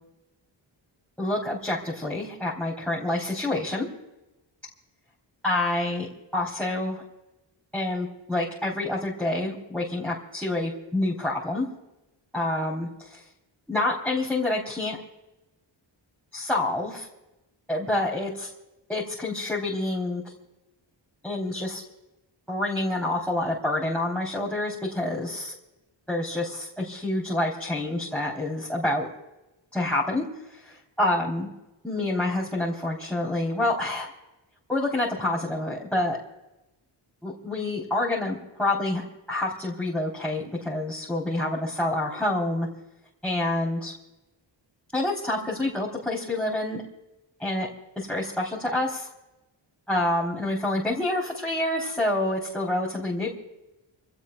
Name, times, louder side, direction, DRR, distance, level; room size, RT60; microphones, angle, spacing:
voice 1, 1.2-3.9 5.4-6.1 6.3-7.0 7.7-11.7 12.3-13.2 13.7-15.0 16.3-17.1 17.7-18.5 18.9-20.2 21.2-21.8 22.5-25.5 26.1-29.1 29.7-30.2 30.5-31.5 31.8-34.1 34.7-36.2 37.2-39.0 39.3-42.7 43.2-43.9 44.9-46.8 47.4-47.7 48.0-49.1 49.9-53.3, left 2 dB, 5° left, -3 dB, 3.5 m, -27 dB
28.5 x 16.5 x 2.3 m, 0.98 s
cardioid pair, 75°, 46 cm